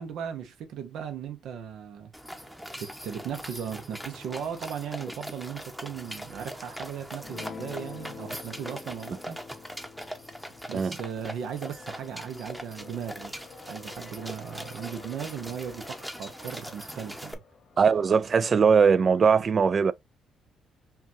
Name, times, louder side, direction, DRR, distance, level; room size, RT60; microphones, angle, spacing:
voice 1, 0.0-2.1 2.8-9.4 10.7-13.3 13.7-17.4, right 8 dB, 80° right, 0.6 m, -37 dB
sound 1, 2.1-17.3, equal, 5° right, 0.8 m, -41 dB
sound 2, 3.7-19.3, left 5 dB, 70° left, 1.1 m, -54 dB
Guitar, 7.2-13.8, left 6 dB, 55° left, 0.5 m, -47 dB
voice 2, 17.8-19.9, right 6 dB, 45° right, 0.3 m, -20 dB
5.6 x 2.3 x 2.6 m
cardioid pair, 90°, 0 cm